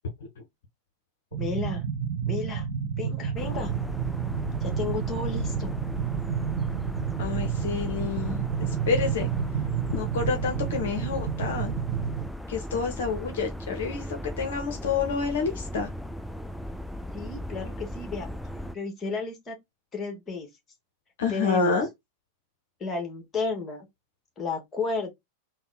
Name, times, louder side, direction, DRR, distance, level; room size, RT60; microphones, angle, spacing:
sound 1, 1.3-12.3, right 8 dB, 50° right, 0.5 m, -30 dB
voice 1, 1.4-1.8 2.3-2.7 3.0-3.7 4.6-5.7 17.1-18.3 18.7-19.6 19.9-20.5 21.3-21.8 22.8-23.9 24.4-25.1, left 4 dB, 20° left, 1.4 m, -32 dB
sound 2, 3.4-18.7, equal, ahead, 0.3 m, -37 dB
voice 2, 7.2-9.3 9.9-11.7 12.5-15.9 21.2-21.9, left 5 dB, 55° left, 0.7 m, -28 dB
3.6 x 2.1 x 3.8 m
figure-of-eight pair, 90°, 0 cm